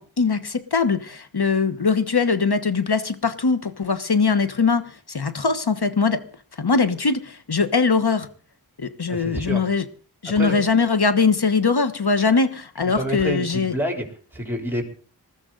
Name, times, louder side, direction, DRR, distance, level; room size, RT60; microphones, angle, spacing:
voice 1, 0.0-6.2 6.6-8.3 8.8-9.8 10.2-13.7, left 4 dB, 65° left, 11 dB, 1.3 m, -21 dB
voice 2, 9.1-9.6 10.4-10.6 12.9-14.9, right 1 dB, 5° right, 2 dB, 4.0 m, -28 dB
20.5 x 13.5 x 4.0 m, 0.42 s
wide cardioid pair, 45°, 42 cm